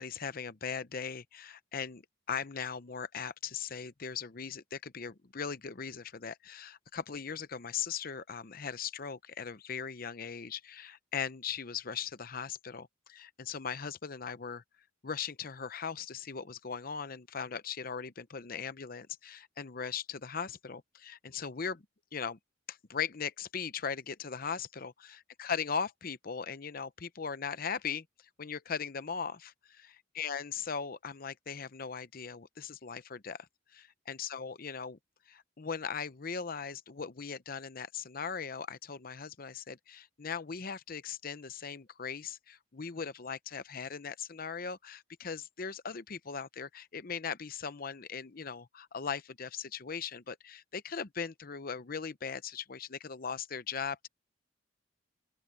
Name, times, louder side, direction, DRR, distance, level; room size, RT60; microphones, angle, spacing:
voice 1, 0.0-2.0 2.3-14.6 15.0-21.8 22.1-22.4 22.7-28.1 28.4-35.0 35.3-54.1, left 6 dB, 50° left, 0.8 m, -39 dB
open air
head